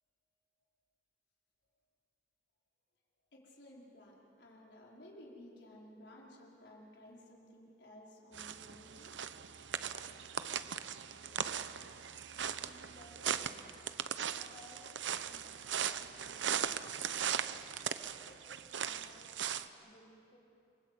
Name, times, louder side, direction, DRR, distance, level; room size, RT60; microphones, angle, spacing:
voice 1, 3.3-9.2 11.1-11.6 12.4-12.7, left 1 dB, 70° left, -2 dB, 5.0 m, -56 dB
sound 1, 8.3-19.7, right 8 dB, 80° right, 0.9 m, -39 dB
voice 2, 12.3-13.7 14.3-16.7 17.0-17.6 18.3-19.3 19.8-20.4, left 1 dB, 35° left, -1 dB, 2.1 m, -60 dB
29.0 x 23.0 x 8.3 m, 2.6 s
head